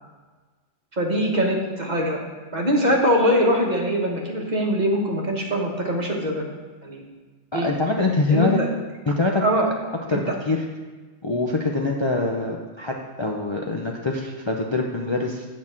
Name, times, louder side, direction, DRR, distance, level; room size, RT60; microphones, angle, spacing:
voice 1, 1.0-2.2 2.5-6.4 6.8-7.1 7.5-7.7 8.3-8.7 9.4-9.7 10.1-10.2, equal, 40° right, 0 dB, 1.3 m, -22 dB
voice 2, 7.5-8.6 9.1-9.4 10.1-10.6 11.2-15.4, left 3 dB, 30° left, -1 dB, 0.6 m, -24 dB
8.8 x 4.1 x 7.2 m, 1.3 s
omnidirectional pair, 1.2 m